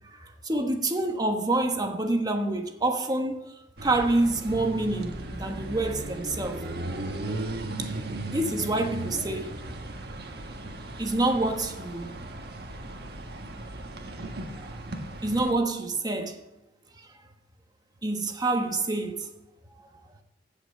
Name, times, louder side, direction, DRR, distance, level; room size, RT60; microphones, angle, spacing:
voice 1, 0.0-3.4 3.8-6.6 7.8-8.0 8.3-9.6 11.0-12.2 14.5-14.7 15.2-16.4 17.0-17.1 18.0-19.3 19.8-19.9, right 2 dB, 20° right, 1.3 m, -27 dB
sound 1, 3.8-15.5, right 1 dB, 60° right, 1.5 m, -36 dB
16.0 x 5.9 x 6.9 m
head